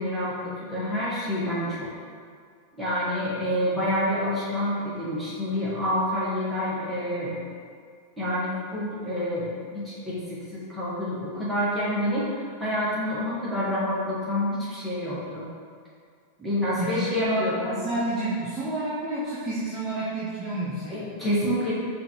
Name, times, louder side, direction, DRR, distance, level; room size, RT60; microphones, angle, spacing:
voice 1, 0.0-1.9 2.8-7.3 8.2-15.5 16.4-17.8 20.9-21.7, left 1 dB, ahead, -10 dB, 1.4 m, -28 dB
voice 2, 16.4-21.1, right 1 dB, 15° right, -9 dB, 0.7 m, -30 dB
4.7 x 2.7 x 3.0 m, 2.1 s
figure-of-eight pair, 90°, 0 cm